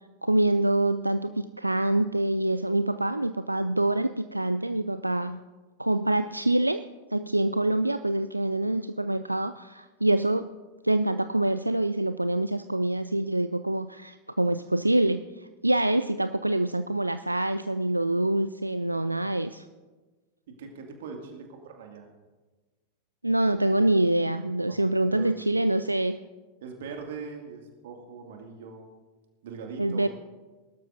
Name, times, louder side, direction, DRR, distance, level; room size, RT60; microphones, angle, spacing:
voice 1, 0.2-5.4 5.8-6.8 7.1-10.5 10.8-19.7 23.2-26.2 29.8-30.1, right 1 dB, 85° right, 12 dB, 0.3 m, -25 dB
voice 2, 20.5-22.1 24.6-24.8 25.1-25.7 26.6-28.9 29.4-30.1, right 5 dB, 55° right, 2 dB, 2.2 m, -41 dB
21.0 x 12.5 x 2.6 m, 1.3 s
figure-of-eight pair, 90°, 0 cm